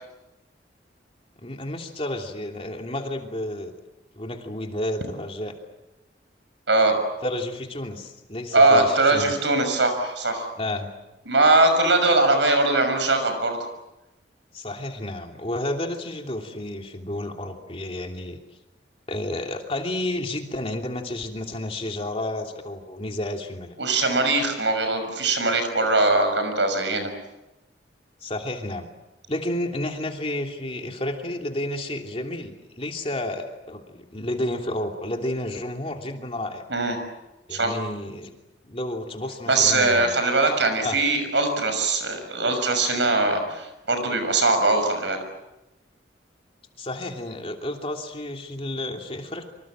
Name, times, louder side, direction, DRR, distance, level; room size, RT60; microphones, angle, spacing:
voice 1, 1.4-3.7 4.1-5.5 7.2-9.3 10.6-10.9 14.5-18.4 19.1-23.7 28.2-28.9 29.3-36.6 37.5-38.3 38.6-40.2 40.8-41.0 46.8-49.5, left 1 dB, 30° left, 3 dB, 3.0 m, -31 dB
voice 2, 8.5-10.5 11.3-13.6 23.8-27.1 36.7-37.0 37.5-37.8 39.5-45.2, right 2 dB, 85° right, 8 dB, 6.4 m, -21 dB
26.5 x 25.5 x 7.7 m, 0.98 s
head